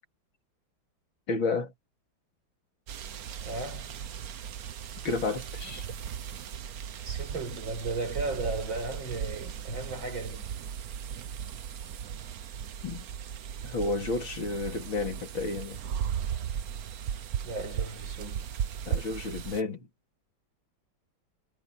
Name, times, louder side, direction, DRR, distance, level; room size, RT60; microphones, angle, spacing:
voice 1, 1.3-1.7 5.0-5.9 12.8-13.1 13.6-15.8 18.9-19.9, left 3 dB, 80° left, 3.9 m, -31 dB
sound 1, 2.9-19.6, right 9 dB, 55° right, 1.3 m, -37 dB
voice 2, 3.4-3.9 5.6-6.1 7.0-10.5 17.4-18.5, right 3 dB, 80° right, 6.6 m, -36 dB
omnidirectional pair, 2.1 m